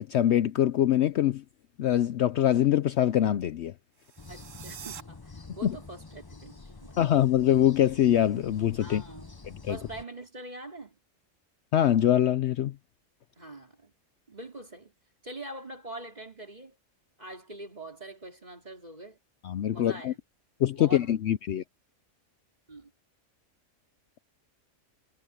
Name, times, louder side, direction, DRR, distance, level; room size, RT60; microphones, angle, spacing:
voice 1, 0.0-1.4 1.8-3.7 5.6-5.8 7.0-9.0 9.5-9.8 11.7-12.7 19.4-20.1 20.6-21.6, left 11 dB, 65° left, 0.8 m, -24 dB
sound 1, 3.9-5.0, right 9 dB, 75° right, 1.2 m, -45 dB
sound 2, 4.2-10.0, left 3 dB, 20° left, 0.8 m, -47 dB
voice 2, 4.3-7.0 8.8-9.3 9.7-11.0 13.4-13.9 14.3-14.9 15.2-16.8 17.2-19.2 19.7-20.2 20.7-21.1 22.7-22.9, right 2 dB, 30° right, 3.7 m, -44 dB
omnidirectional pair, 1.4 m